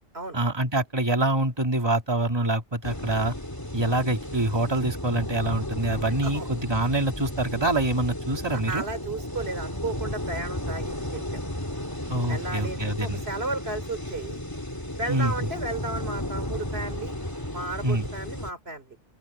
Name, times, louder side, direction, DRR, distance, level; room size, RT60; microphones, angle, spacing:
voice 1, 0.3-3.3 3.7-8.8 12.1-13.2 15.1-15.3 17.8-18.1, right 1 dB, 25° right, 2.3 m, -25 dB
sound 1, 2.8-18.5, left 1 dB, 20° left, 3.1 m, -34 dB
voice 2, 8.5-11.4 12.3-14.4 15.0-17.1 17.5-19.0, right 3 dB, 85° right, 3.4 m, -34 dB
open air
omnidirectional pair, 1.0 m